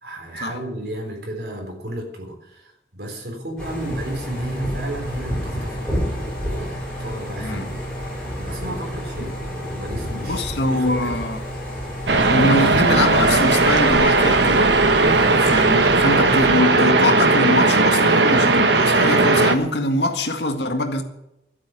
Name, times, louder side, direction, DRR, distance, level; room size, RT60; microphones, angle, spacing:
voice 1, 0.0-6.1 6.4-7.8 8.3-11.2 15.1-15.4, right 1 dB, 60° right, 3.9 m, -33 dB
sound 1, 3.6-16.6, equal, 5° left, 5.7 m, -30 dB
voice 2, 10.1-11.4 12.2-14.7 15.4-21.0, left 2 dB, 75° left, 1.8 m, -23 dB
sound 2, 12.1-19.6, right 3 dB, 80° right, 1.2 m, -17 dB
13.0 x 8.3 x 9.7 m
head